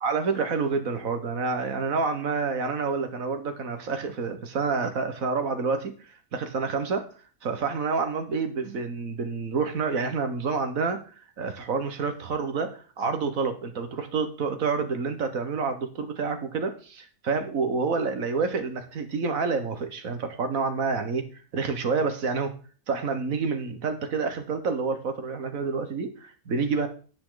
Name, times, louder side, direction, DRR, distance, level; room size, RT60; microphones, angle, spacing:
voice 1, 0.0-7.1 7.4-21.2 21.5-22.5 22.9-26.9, right 4 dB, 60° right, 8 dB, 1.7 m, -28 dB
17.0 x 5.8 x 3.9 m, 0.38 s
omnidirectional pair, 1.6 m